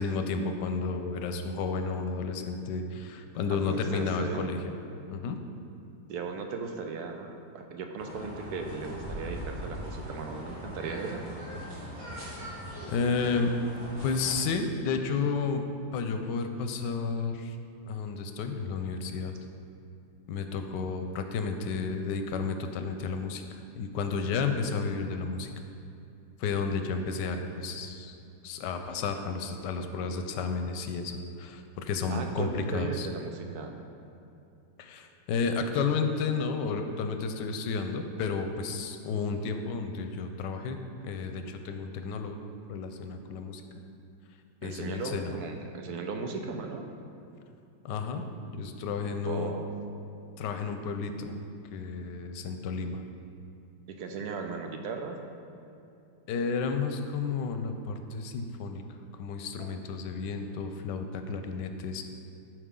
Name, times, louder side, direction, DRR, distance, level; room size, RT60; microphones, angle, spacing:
voice 1, 0.0-4.7 5.1-5.4 12.9-13.6 14.0-15.6 15.9-17.6 17.9-19.3 20.3-25.5 26.4-28.2 28.4-33.1 34.8-40.8 41.0-42.4 42.7-43.6 44.6-45.3 47.8-48.2 48.5-49.5 50.4-51.4 51.7-53.0 56.3-58.8 59.1-62.0, left 4 dB, 90° left, 6 dB, 1.2 m, -32 dB
voice 2, 3.7-4.6 6.1-11.2 32.1-33.7 44.6-46.8 49.2-49.7 53.9-55.2 59.6-59.7, right 4 dB, 70° right, 4 dB, 1.1 m, -37 dB
sound 1, 8.0-14.4, equal, 45° right, 2.5 m, -40 dB
11.0 x 4.9 x 3.7 m, 2.7 s
omnidirectional pair, 1.8 m